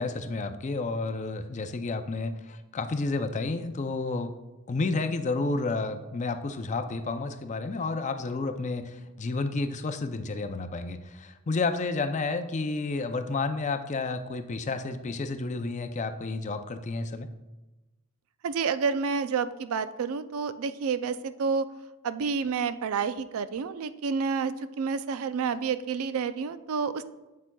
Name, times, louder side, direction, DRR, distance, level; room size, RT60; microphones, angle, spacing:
voice 1, 0.0-4.3 4.7-17.3, left 3 dB, 35° left, 9 dB, 0.4 m, -31 dB
voice 2, 18.4-21.7 22.0-27.0, right 5 dB, 75° right, 13 dB, 0.4 m, -29 dB
8.1 x 7.5 x 2.3 m, 1.0 s
head